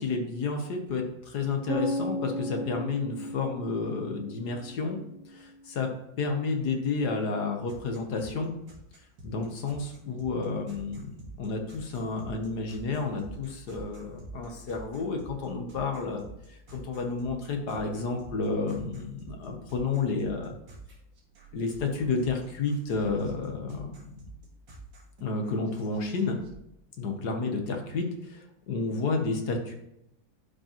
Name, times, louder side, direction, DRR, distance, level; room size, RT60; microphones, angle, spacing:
voice 1, 0.0-5.0 5.3-5.9 6.2-8.5 9.2-11.1 11.4-16.2 16.5-20.5 21.5-23.9 25.2-26.4 27.0-29.7, left 4 dB, 60° left, 4 dB, 1.5 m, -31 dB
sound 1, 1.7-5.6, equal, 50° right, 1.2 m, -35 dB
sound 2, 7.7-26.5, right 2 dB, 70° right, 2.4 m, -47 dB
11.5 x 5.0 x 3.0 m, 0.81 s
omnidirectional pair, 2.1 m